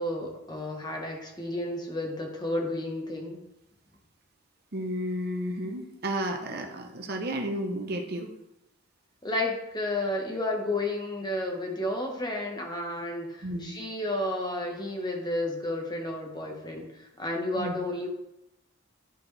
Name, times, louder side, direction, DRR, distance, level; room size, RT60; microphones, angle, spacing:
voice 1, 0.0-3.4 9.2-18.1, left 1 dB, 20° left, 1 dB, 1.2 m, -32 dB
voice 2, 4.7-8.3 13.4-13.8 17.5-17.8, right 1 dB, 50° right, 3 dB, 0.8 m, -32 dB
11.0 x 4.4 x 3.3 m, 0.86 s
head